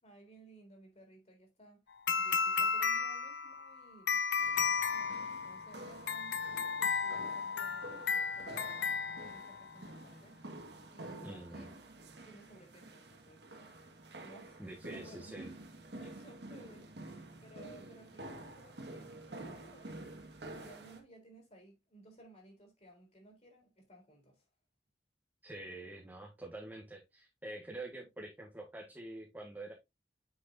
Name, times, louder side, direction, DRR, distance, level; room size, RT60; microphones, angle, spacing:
voice 1, 0.0-1.8 2.2-4.2 4.6-11.7 12.3-15.3 16.0-24.4, right 2 dB, 40° left, 3.8 m, -59 dB
sound 1, 2.1-9.8, left 5 dB, 85° left, 0.7 m, -34 dB
sound 2, 4.4-21.0, right 2 dB, 70° right, 1.8 m, -49 dB
voice 2, 11.2-11.7 14.6-15.5 25.4-29.7, right 1 dB, 10° right, 1.5 m, -46 dB
8.0 x 6.4 x 2.6 m
head